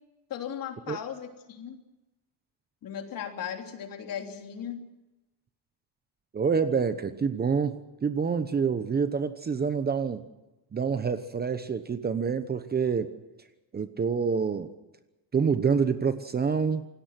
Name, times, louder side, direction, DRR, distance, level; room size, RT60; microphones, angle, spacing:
voice 1, 0.3-1.8 2.8-4.9, left 8 dB, 50° left, 4 dB, 3.3 m, -37 dB
voice 2, 6.3-10.2 10.7-13.1 13.7-14.7 15.3-16.9, right 6 dB, 25° right, 11 dB, 0.9 m, -27 dB
27.5 x 18.5 x 6.0 m, 1.0 s
cardioid pair, 160°, 42 cm